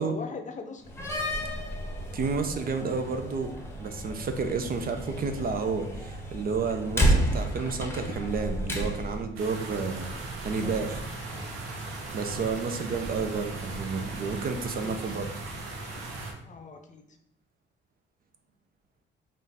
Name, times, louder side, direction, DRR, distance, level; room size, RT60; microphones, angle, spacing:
voice 1, 0.0-1.5 10.5-11.5 12.2-12.3 12.7-12.8 14.8-15.0 16.5-17.0, left 4 dB, 40° left, 5 dB, 0.6 m, -42 dB
Slam, 0.8-9.2, equal, 10° left, 0.8 m, -31 dB
voice 2, 2.1-3.5 3.8-11.0 12.1-15.3, right 4 dB, 45° right, 7 dB, 0.5 m, -31 dB
sound 1, 9.4-16.3, right 2 dB, 85° right, 0.8 m, -37 dB
3.7 x 2.5 x 4.0 m, 0.76 s
cardioid pair, 90°, 20 cm